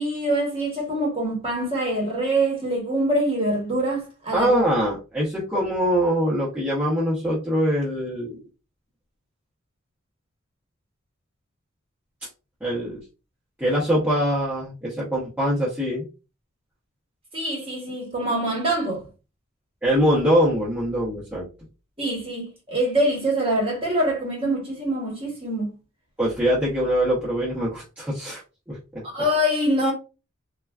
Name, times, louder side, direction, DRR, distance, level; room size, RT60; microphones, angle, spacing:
voice 1, 0.0-4.5 17.3-19.1 22.0-25.7 29.1-29.9, right 1 dB, 25° right, 1.0 m, -24 dB
voice 2, 4.3-8.4 12.6-13.0 13.6-16.1 19.8-21.5 26.2-28.4 28.7-29.0, equal, 10° right, 0.7 m, -23 dB
3.3 x 2.2 x 2.2 m
head